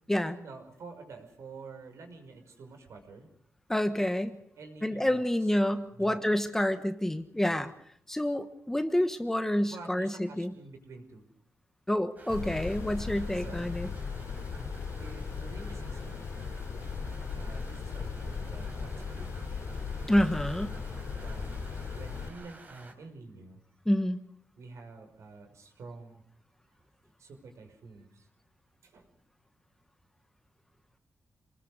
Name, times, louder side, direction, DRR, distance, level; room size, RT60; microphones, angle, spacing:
voice 1, 0.3-3.3 4.6-5.5 5.9-6.2 7.4-7.7 9.6-11.2 13.2-13.8 15.0-16.4 17.3-19.5 21.1-21.4 21.9-23.6 24.6-26.2 27.2-28.3 28.8-29.1, right 3 dB, 75° right, 5 dB, 5.7 m, -48 dB
voice 2, 3.7-4.4 4.8-7.7 8.1-10.1 10.4-10.5 11.9-13.9 20.1-20.7 23.9-24.2, left 1 dB, 10° left, 9 dB, 1.2 m, -28 dB
Rain, 12.2-22.9, right 2 dB, 35° right, 4.4 m, -53 dB
sound 1, 12.3-22.3, left 5 dB, 75° left, 4.0 m, -37 dB
28.0 x 20.5 x 6.4 m, 0.67 s
wide cardioid pair, 125°, 5 cm